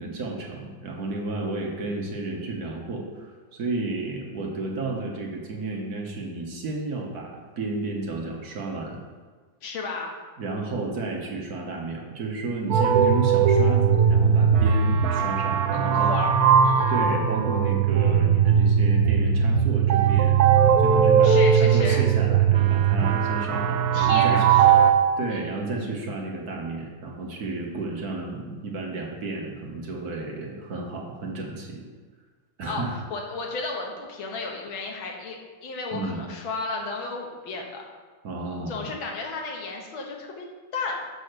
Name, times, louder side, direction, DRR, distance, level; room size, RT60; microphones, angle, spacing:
voice 1, 0.0-9.0 10.4-16.1 16.9-31.8 32.6-33.0 35.9-36.2 38.2-38.9, right 3 dB, 55° right, 0 dB, 1.4 m, -32 dB
voice 2, 9.6-10.1 15.7-16.4 16.6-16.9 21.2-22.0 23.9-24.7 25.3-25.5 32.7-37.8 38.7-40.5 40.7-41.0, left 3 dB, 80° left, 1 dB, 1.9 m, -33 dB
sound 1, 12.7-24.9, right 7 dB, 75° right, 0.8 m, -19 dB
6.3 x 5.5 x 6.5 m, 1.5 s
omnidirectional pair, 2.2 m